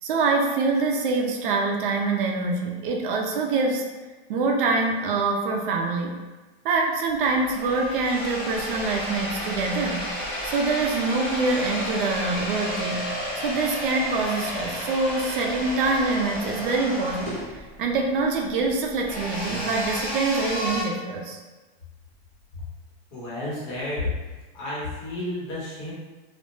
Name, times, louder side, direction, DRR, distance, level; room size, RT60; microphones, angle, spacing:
voice 1, 0.0-3.8 4.3-6.1 6.6-10.1 10.4-13.1 13.4-17.3 17.8-21.4, right 3 dB, 55° right, 1 dB, 0.4 m, -25 dB
sound 1, 7.1-20.8, left 1 dB, 5° left, 0.7 m, -32 dB
voice 2, 23.1-24.1 24.5-25.9, left 2 dB, 45° left, -6 dB, 1.1 m, -31 dB
2.3 x 2.0 x 3.0 m, 1.2 s
supercardioid pair, 160°, 32 cm